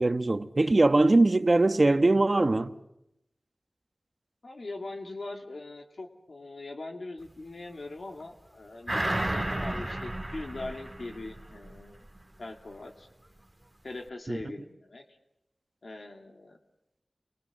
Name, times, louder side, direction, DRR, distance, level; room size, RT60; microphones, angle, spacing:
voice 1, 0.0-2.7 14.3-14.4, right 2 dB, 50° right, 1.1 m, -22 dB
voice 2, 4.4-12.0 12.4-13.1 13.8-15.0 15.8-16.6, left 2 dB, 80° left, 2.4 m, -41 dB
sound 1, 8.9-11.8 12.2-12.3, right 1 dB, 15° right, 1.7 m, -32 dB
29.0 x 23.0 x 7.6 m
wide cardioid pair, 45°, 0 cm